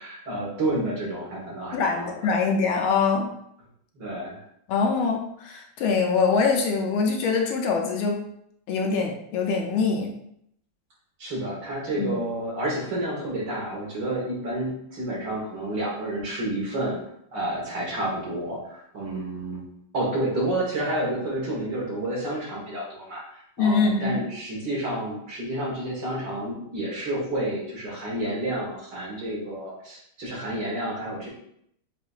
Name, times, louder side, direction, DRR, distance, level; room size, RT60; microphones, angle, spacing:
voice 1, 0.0-2.1 4.0-4.4 11.2-17.0 17.3-19.6 19.9-31.3, right 1 dB, 55° right, -4 dB, 1.7 m, -30 dB
voice 2, 1.7-3.3 4.7-8.2 8.7-10.1 12.0-12.1 23.6-24.3, left 5 dB, 75° left, 2 dB, 1.4 m, -24 dB
6.6 x 2.5 x 2.4 m, 0.73 s
omnidirectional pair, 2.4 m